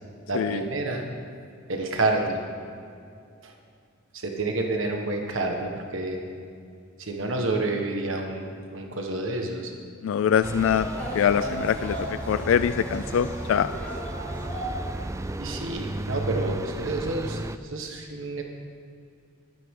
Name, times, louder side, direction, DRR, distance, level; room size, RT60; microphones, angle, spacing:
voice 1, 0.3-1.0 1.7-2.4 3.4-3.5 4.1-6.2 7.0-9.7 15.4-18.4, right 2 dB, 70° right, 2 dB, 1.4 m, -29 dB
voice 2, 10.0-10.9 11.1-13.8, left 8 dB, 75° left, 13 dB, 0.3 m, -24 dB
sound 1, 10.3-15.1 15.3-16.1 16.5-16.9, right 1 dB, 10° left, 3.7 m, -37 dB
sound 2, 10.4-17.6, right 2 dB, 15° right, 0.3 m, -34 dB
21.5 x 9.4 x 3.8 m, 2.4 s
head